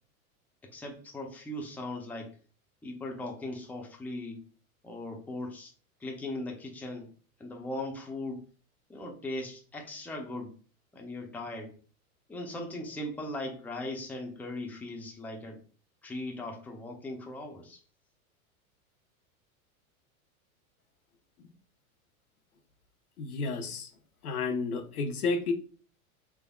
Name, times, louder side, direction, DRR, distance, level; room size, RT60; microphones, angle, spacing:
voice 1, 0.7-2.4 2.8-4.4 4.8-5.7 6.0-7.1 7.4-8.5 8.9-10.5 10.9-11.7 12.3-15.6 16.0-17.8, left 1 dB, 5° left, 1 dB, 0.5 m, -39 dB
voice 2, 23.2-23.9 24.2-25.5, left 4 dB, 85° left, 6 dB, 0.8 m, -31 dB
3.5 x 3.3 x 2.3 m, 0.39 s
hypercardioid pair, 100°, 43 cm